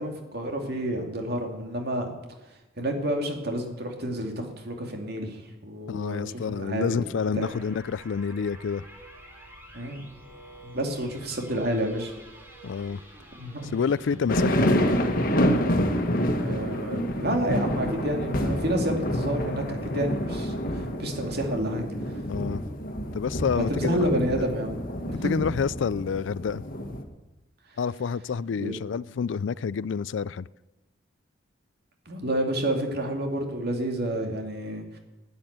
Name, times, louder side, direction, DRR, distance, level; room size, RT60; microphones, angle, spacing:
voice 1, 0.0-2.1 2.8-7.5 9.7-10.0 10.6-12.1 13.4-13.8 16.4-21.8 23.5-24.7 25.4-25.5 28.6-28.7 32.1-35.0, right 1 dB, 55° right, 2.5 m, -29 dB
voice 2, 5.9-8.9 12.6-13.0 13.7-15.0 22.3-22.6 23.1-24.4 25.2-26.6 27.8-30.5, left 6 dB, 70° left, 0.4 m, -28 dB
sound 1, 7.4-15.8, right 1 dB, 10° right, 2.9 m, -49 dB
sound 2, 14.3-27.0, equal, 45° left, 1.5 m, -28 dB
12.0 x 9.6 x 8.8 m
head